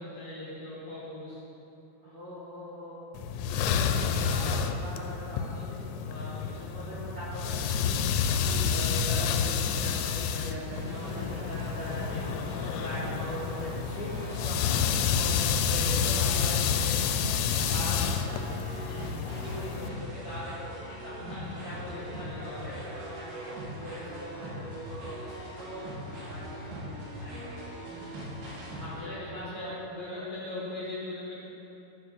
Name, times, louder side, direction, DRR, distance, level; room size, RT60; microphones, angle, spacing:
voice 1, 0.0-1.4 6.7-6.9 8.3-8.6 10.8-11.2 12.5-12.8 13.9-14.3 14.6-15.1 18.8-19.1 21.2-22.9 27.8-28.4 28.9-31.3, left 2 dB, 60° left, -8 dB, 2.5 m, -41 dB
voice 2, 2.0-3.0 3.4-5.6 5.9-8.0 8.4-12.3 12.6-18.4 19.2-21.1 21.6-26.9 27.2-27.9 28.3-29.7 30.1-30.2, equal, 40° right, -13 dB, 2.2 m, -41 dB
sound 1, 3.2-19.9, left 7 dB, 85° left, 3.2 m, -29 dB
sound 2, 10.7-29.0, equal, 70° right, 4.0 m, -41 dB
12.5 x 4.7 x 6.6 m, 2.9 s
omnidirectional pair, 5.8 m